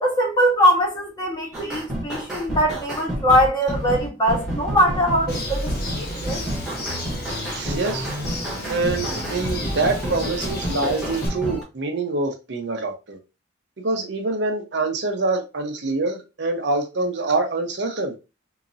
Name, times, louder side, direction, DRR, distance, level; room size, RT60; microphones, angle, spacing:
voice 1, 0.0-6.4, equal, 20° left, 1.2 m, -21 dB
sound 1, 1.5-11.6, equal, 5° right, 1.2 m, -29 dB
Bird, 5.3-11.3, left 1 dB, 50° left, 1.3 m, -33 dB
voice 2, 7.5-8.1 8.7-13.2 13.8-18.1, right 3 dB, 60° right, 0.7 m, -25 dB
3.9 x 2.8 x 2.6 m
head